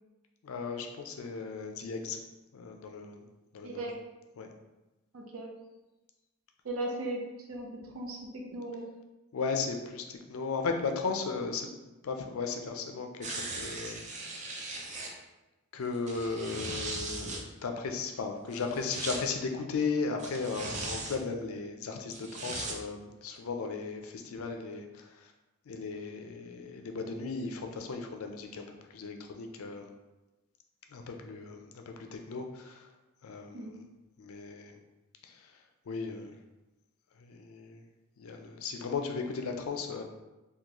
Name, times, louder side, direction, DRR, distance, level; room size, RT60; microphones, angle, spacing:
voice 1, 0.4-2.2 2.5-3.2 3.5-3.8 4.4-4.5 9.3-11.7 12.0-14.6 15.7-25.3 25.7-28.7 28.9-29.9 30.9-32.9 33.2-33.8 34.2-34.8 35.2-35.5 35.9-36.3 37.2-37.8 38.2-40.0, left 4 dB, 75° left, 4 dB, 0.4 m, -36 dB
voice 2, 3.6-4.0 5.1-5.5 6.6-7.2 7.5-7.7 7.9-8.8 33.5-33.7, right 1 dB, 75° right, 1 dB, 0.6 m, -37 dB
sound 1, 13.2-15.1 15.9-17.4 18.5-19.2 20.2-21.2 22.1-22.8 23.4-23.5, right 2 dB, 35° right, 0.4 m, -39 dB
3.7 x 2.3 x 2.9 m, 1.1 s
head